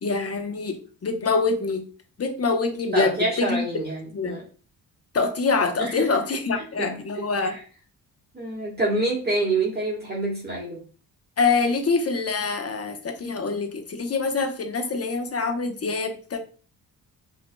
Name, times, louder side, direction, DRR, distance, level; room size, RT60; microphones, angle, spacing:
voice 1, 0.0-1.9 2.2-3.7 4.1-4.4 5.1-7.6 11.4-16.4, left 4 dB, 40° left, 7 dB, 0.9 m, -25 dB
voice 2, 2.9-4.4 5.8-6.4 6.8-6.9 7.4-7.5 8.3-10.8, right 2 dB, 25° right, -4 dB, 1.4 m, -27 dB
5.9 x 2.9 x 2.2 m, 0.40 s
supercardioid pair, 60°, 39 cm